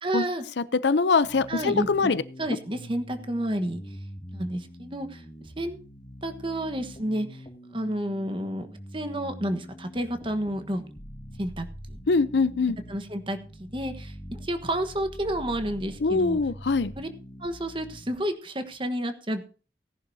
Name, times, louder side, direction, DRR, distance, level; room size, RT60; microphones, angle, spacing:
voice 1, 0.0-0.4 1.5-3.8 4.3-5.2 5.6-5.8 6.2-7.4 7.7-8.7 8.9-10.8 11.4-12.0 12.9-16.4 17.0-17.1 17.4-19.5, right 1 dB, 30° right, 9 dB, 1.3 m, -30 dB
voice 2, 0.6-2.2 12.1-12.8 16.0-16.9, left 4 dB, 75° left, 17 dB, 0.6 m, -23 dB
sound 1, 1.2-18.2, equal, 25° left, 2.3 m, -44 dB
17.5 x 11.0 x 2.8 m, 0.37 s
head